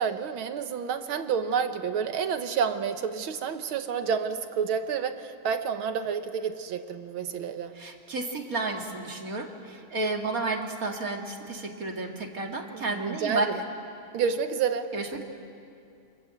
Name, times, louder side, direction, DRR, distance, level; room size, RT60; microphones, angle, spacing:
voice 1, 0.0-7.7 12.7-13.5 14.1-14.9, right 6 dB, 70° right, 8 dB, 2.0 m, -29 dB
voice 2, 7.7-13.5 14.9-15.2, right 3 dB, 40° right, 2 dB, 2.7 m, -32 dB
28.0 x 26.0 x 7.9 m, 2.5 s
omnidirectional pair, 2.4 m